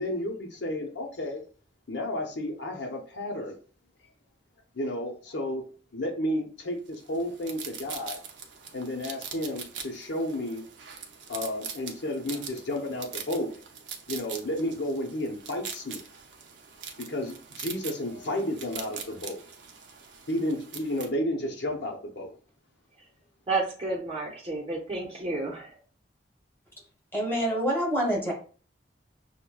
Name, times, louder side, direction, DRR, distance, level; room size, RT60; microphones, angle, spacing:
voice 1, 0.0-1.4 1.9-3.6 4.7-5.6 5.9-8.2 8.7-10.6 11.3-13.5 14.1-16.0 17.0-19.4 20.3-22.3, left 1 dB, 70° left, 1 dB, 0.8 m, -32 dB
sound 1, 6.9-21.1, right 7 dB, 80° right, 0.6 m, -42 dB
voice 2, 23.5-25.8, right 3 dB, 30° right, -4 dB, 0.7 m, -31 dB
voice 3, 27.1-28.3, equal, 15° left, -2 dB, 1.4 m, -26 dB
6.2 x 2.2 x 2.3 m, 0.40 s
head